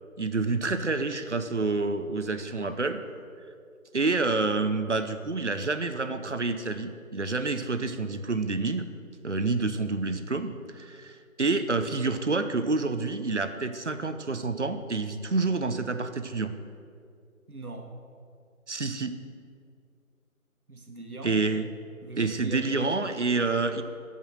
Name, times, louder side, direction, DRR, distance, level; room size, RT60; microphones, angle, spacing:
voice 1, 0.2-3.0 3.9-8.9 9.2-16.5 18.7-19.2 21.2-21.7 22.2-23.8, right 3 dB, 55° right, 9 dB, 0.7 m, -28 dB
voice 2, 17.5-18.0 20.7-21.7 22.0-23.1, right 2 dB, 80° right, 3 dB, 1.6 m, -41 dB
13.0 x 5.5 x 6.5 m, 2.3 s
figure-of-eight pair, 170°, 43 cm